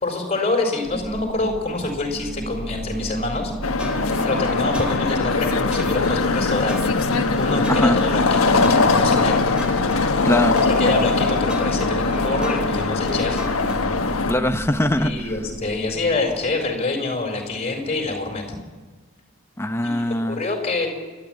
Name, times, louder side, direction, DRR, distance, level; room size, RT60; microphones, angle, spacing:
voice 1, 0.0-3.5 4.2-6.9 7.4-9.4 10.6-13.4 15.0-18.6 19.8-20.9, left 3 dB, 30° left, 3 dB, 4.0 m, -26 dB
sound 1, 0.8-16.8, right 1 dB, 25° right, 1.5 m, -33 dB
sound 2, 3.6-14.3, left 3 dB, 80° left, 1.3 m, -21 dB
sound 3, 3.8-14.0, left 1 dB, 5° right, 2.3 m, -35 dB
voice 2, 10.2-10.6 14.3-15.3 19.6-20.4, left 1 dB, 10° left, 7 dB, 0.7 m, -21 dB
29.0 x 12.0 x 8.7 m, 1.3 s
head